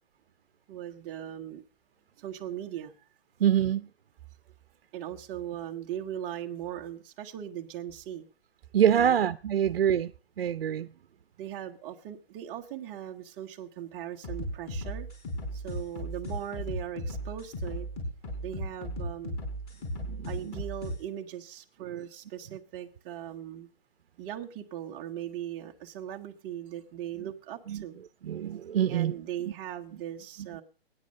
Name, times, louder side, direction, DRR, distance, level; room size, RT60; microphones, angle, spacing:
voice 1, 0.7-1.6 2.2-3.0 4.9-8.2 8.9-9.2 11.4-15.1 15.5-17.9 18.4-19.4 20.3-23.7 24.2-27.9 28.9-30.6, right 11 dB, 15° right, 0.8 m, -39 dB
voice 2, 3.4-3.9 8.7-10.1 10.4-10.9 20.0-20.5 27.7-27.8 28.2-29.1, right 9 dB, 65° right, 0.7 m, -25 dB
sound 1, 14.2-21.0, equal, 20° left, 4.9 m, -36 dB
19.0 x 9.7 x 6.3 m
hypercardioid pair, 165°, 31 cm